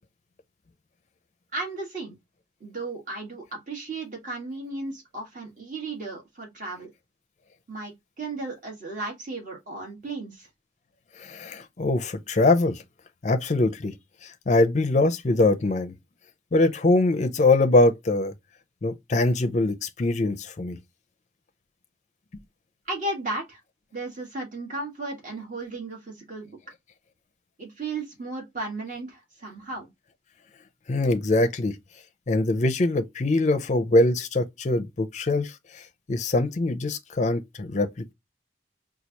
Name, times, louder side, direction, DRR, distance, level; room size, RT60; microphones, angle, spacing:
voice 1, 1.5-2.1 2.6-6.9 7.7-10.5 22.8-23.6 23.9-26.6 27.6-29.9, right 2 dB, 45° right, 1.6 m, -35 dB
voice 2, 11.2-12.8 13.2-13.9 14.2-15.9 16.5-18.3 18.8-20.8 30.9-31.8 32.3-35.8 36.1-37.9, left 2 dB, 40° left, 0.5 m, -23 dB
4.5 x 2.3 x 2.8 m
head